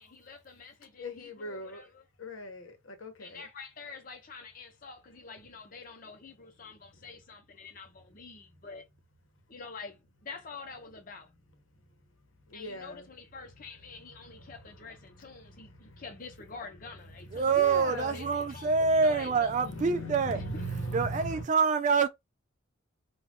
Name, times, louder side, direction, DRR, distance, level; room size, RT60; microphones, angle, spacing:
voice 1, 0.0-2.0 3.2-8.9 9.5-11.3 12.5-17.5 17.9-19.6, left 4 dB, 40° left, 0.7 m, -47 dB
voice 2, 1.0-1.8 2.2-3.5 12.5-13.1 14.4-14.5 15.8-16.0 17.2-18.2 19.6-21.4, equal, 75° left, 0.9 m, -39 dB
voice 3, 17.3-20.4 20.9-22.1, right 5 dB, 35° right, 0.3 m, -26 dB
2.3 x 2.3 x 3.4 m
head